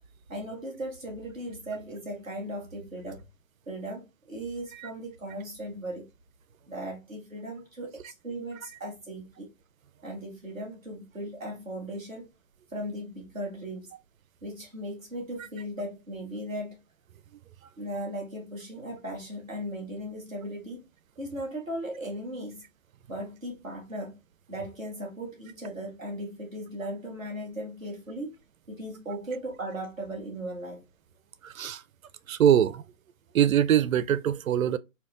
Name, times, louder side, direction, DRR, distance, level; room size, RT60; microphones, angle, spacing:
voice 1, 0.3-3.2 3.7-6.1 6.7-9.5 10.0-12.3 12.7-13.9 14.4-16.8 17.8-20.8 21.2-22.6 23.1-24.2 24.5-28.3 28.7-30.8, right 1 dB, ahead, 0.4 m, -37 dB
voice 2, 32.3-32.8 33.3-34.8, right 10 dB, 85° right, 0.5 m, -22 dB
5.1 x 2.4 x 2.4 m
hypercardioid pair, 150°, 40 cm